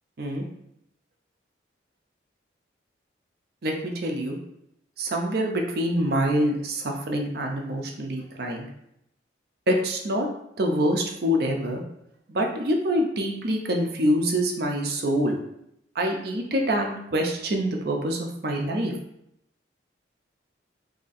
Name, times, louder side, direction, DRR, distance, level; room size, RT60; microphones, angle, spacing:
voice 1, 3.6-4.4 5.0-8.7 9.7-10.3 10.6-11.8 12.3-15.4 15.9-18.9, equal, 55° right, 2 dB, 0.5 m, -25 dB
2.8 x 2.5 x 4.0 m, 0.78 s
head